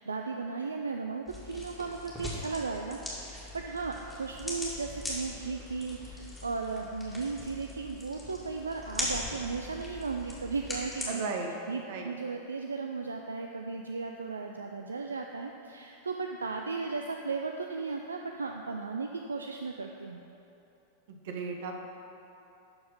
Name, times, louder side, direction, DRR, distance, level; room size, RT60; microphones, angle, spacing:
voice 1, 0.0-11.3 11.7-20.2, right 4 dB, 75° right, 3 dB, 0.4 m, -36 dB
sound 1, 1.3-11.1, left 1 dB, 5° left, 2.2 m, -40 dB
voice 2, 11.1-11.5 11.9-12.1 21.1-21.9, right 4 dB, 55° right, 2 dB, 1.0 m, -36 dB
12.0 x 4.5 x 5.2 m, 2.9 s
figure-of-eight pair, 90°, 0 cm